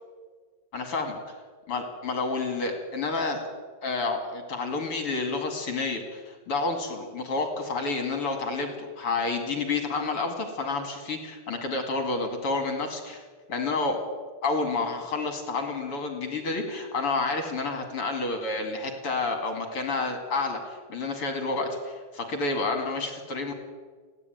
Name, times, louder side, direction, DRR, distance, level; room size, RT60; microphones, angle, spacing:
voice 1, 0.7-1.2 1.7-3.4 3.8-13.2 13.5-14.0 14.4-23.5, left 3 dB, 40° left, 5 dB, 2.8 m, -29 dB
29.5 x 11.0 x 9.4 m, 1.5 s
omnidirectional pair, 4.5 m